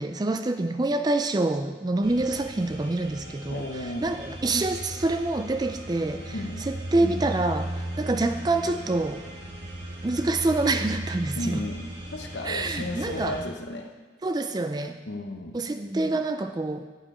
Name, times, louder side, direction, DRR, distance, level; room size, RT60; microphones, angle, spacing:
voice 1, 0.0-3.6 4.0-6.3 6.9-7.7 8.0-9.2 10.0-11.6 12.5-13.4 14.2-15.0 15.5-16.8, right 2 dB, 20° right, 8 dB, 0.4 m, -26 dB
sound 1, 2.0-13.5, right 1 dB, 55° right, 1.5 m, -37 dB
voice 2, 3.5-4.1 6.3-6.6 11.4-13.9 15.1-15.7, left 1 dB, 70° left, 4 dB, 1.0 m, -34 dB
8.8 x 6.9 x 4.9 m, 1.3 s
head